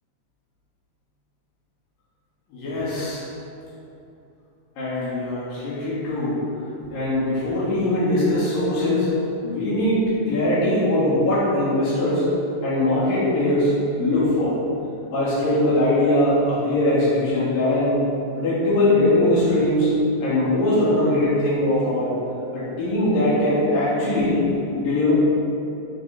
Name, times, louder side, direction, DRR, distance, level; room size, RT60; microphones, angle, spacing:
voice 1, 2.5-3.2 4.8-6.4 6.9-9.1 9.4-12.3 12.6-13.7 14.0-14.5 15.1-18.0 18.4-19.9 20.2-22.1 22.5-24.4 24.7-25.1, left 1 dB, 75° left, -10 dB, 5.0 m, -21 dB
18.0 x 9.1 x 3.9 m, 2.8 s
omnidirectional pair, 4.0 m